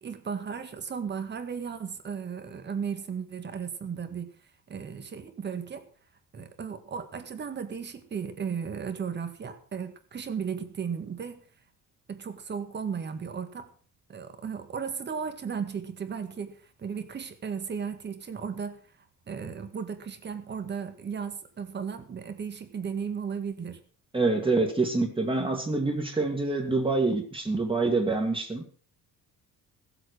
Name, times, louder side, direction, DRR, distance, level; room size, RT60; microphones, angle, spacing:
voice 1, 0.0-4.3 4.7-5.9 6.3-11.4 12.1-13.7 14.1-18.8 19.3-23.8, right 6 dB, 30° right, 9 dB, 1.9 m, -35 dB
voice 2, 24.1-28.7, right 3 dB, 15° right, 2 dB, 2.2 m, -26 dB
18.0 x 8.0 x 6.3 m, 0.42 s
cardioid pair, 170°, 34 cm